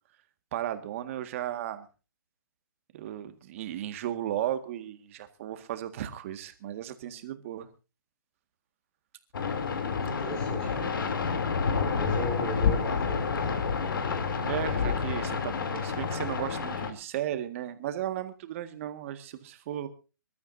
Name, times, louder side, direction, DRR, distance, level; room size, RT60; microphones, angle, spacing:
voice 1, 0.5-1.9 2.9-7.7 14.4-19.9, right 11 dB, 35° right, 9 dB, 1.8 m, -35 dB
sound 1, 9.3-16.9, left 5 dB, 65° left, 3.0 m, -29 dB
voice 2, 10.0-11.3 11.6-13.6, equal, 5° left, 0 dB, 4.5 m, -37 dB
25.5 x 13.0 x 2.7 m, 0.32 s
hypercardioid pair, 155°, 12 cm